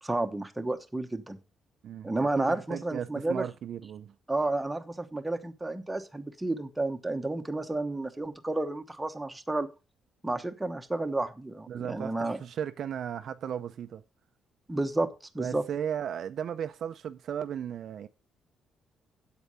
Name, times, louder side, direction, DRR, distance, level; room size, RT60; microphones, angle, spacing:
voice 1, 0.0-1.4 2.0-3.4 4.3-9.7 10.2-12.4 14.7-15.1 15.3-15.6, right 2 dB, 10° right, 1.0 m, -31 dB
voice 2, 1.8-4.1 11.7-14.0 15.4-18.1, right 9 dB, 50° right, 0.5 m, -36 dB
8.4 x 8.1 x 5.4 m
cardioid pair, 155°, 0 cm